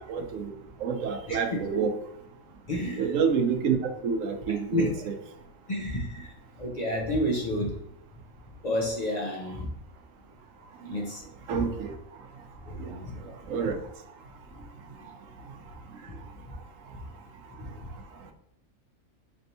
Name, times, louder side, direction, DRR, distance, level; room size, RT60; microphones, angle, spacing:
voice 1, 0.1-0.5 0.8-1.9 3.0-3.8 4.0-5.2 11.5-11.9 12.8-12.9 13.5-13.8, right 6 dB, 80° right, 6 dB, 1.0 m, -27 dB
voice 2, 1.3-1.8 2.7-3.2 4.7-4.9 5.7-6.3 6.6-7.8 8.6-9.7 10.8-11.2 12.6-13.3 15.0-15.1, left 1 dB, 40° left, -1 dB, 0.7 m, -31 dB
4.3 x 3.3 x 2.7 m, 0.81 s
omnidirectional pair, 1.3 m